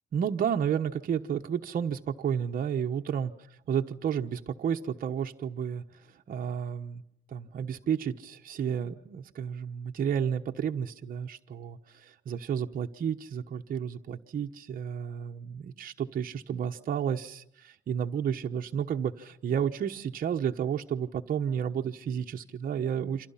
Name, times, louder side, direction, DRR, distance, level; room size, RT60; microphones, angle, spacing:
voice 1, 0.1-3.3 3.7-7.0 7.3-23.3, right 8 dB, 45° right, 3 dB, 1.1 m, -31 dB
28.0 x 26.5 x 5.7 m, 0.72 s
cardioid pair, 155°, 20 cm